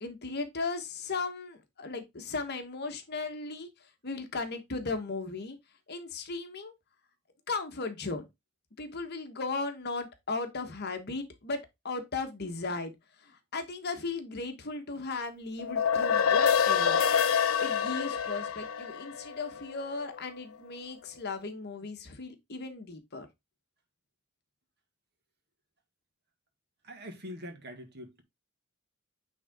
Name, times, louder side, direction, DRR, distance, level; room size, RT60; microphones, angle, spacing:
voice 1, 0.0-3.7 4.0-5.6 5.9-6.7 7.5-8.3 8.8-11.6 11.8-12.9 13.2-17.1 17.6-23.3, left 3 dB, 50° left, 1.3 m, -36 dB
sound 1, 15.6-20.2, left 7 dB, 80° left, 0.7 m, -27 dB
voice 2, 26.8-28.2, equal, 55° right, 1.7 m, -43 dB
9.0 x 3.8 x 3.6 m
head